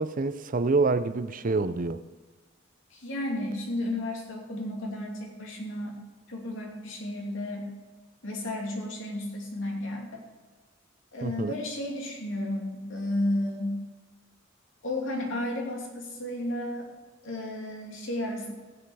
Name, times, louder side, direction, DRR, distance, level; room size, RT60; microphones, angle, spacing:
voice 1, 0.0-2.0 11.2-11.5, right 3 dB, 45° right, 12 dB, 0.5 m, -27 dB
voice 2, 2.9-6.0 6.3-7.7 8.2-10.2 11.1-13.8 14.8-16.9 17.2-18.5, left 1 dB, 80° left, 0 dB, 2.6 m, -33 dB
15.5 x 8.2 x 4.9 m, 1.3 s
head